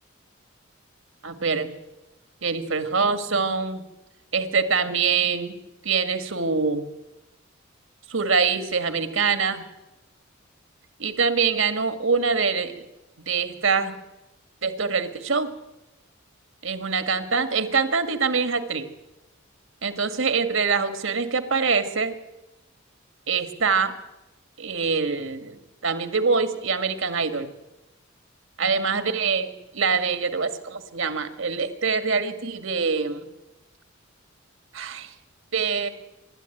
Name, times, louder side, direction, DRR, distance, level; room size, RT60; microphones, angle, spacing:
voice 1, 1.2-1.7 2.4-3.8 4.3-5.6 5.8-6.8 8.1-9.6 11.0-12.8 13.3-13.9 14.6-15.5 16.6-18.9 19.8-22.1 23.3-23.9 24.6-27.5 28.6-33.3 34.7-35.1 35.5-35.9, right 5 dB, 75° right, 9 dB, 2.0 m, -24 dB
26.5 x 12.5 x 9.2 m, 1.0 s
head